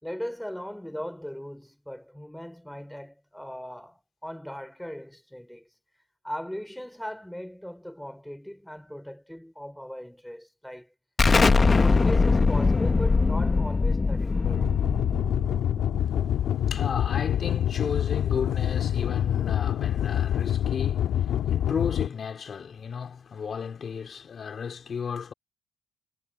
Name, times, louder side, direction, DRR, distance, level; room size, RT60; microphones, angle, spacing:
voice 1, 0.0-5.7 6.2-10.9 11.7-14.7, equal, 5° left, 3.9 m, -38 dB
Explosion, 11.2-16.6, left 4 dB, 30° left, 1.3 m, -22 dB
sound 1, 14.4-22.1, left 10 dB, 75° left, 2.1 m, -26 dB
voice 2, 16.0-25.3, left 6 dB, 50° left, 4.3 m, -34 dB
cardioid pair, 90°, 0 cm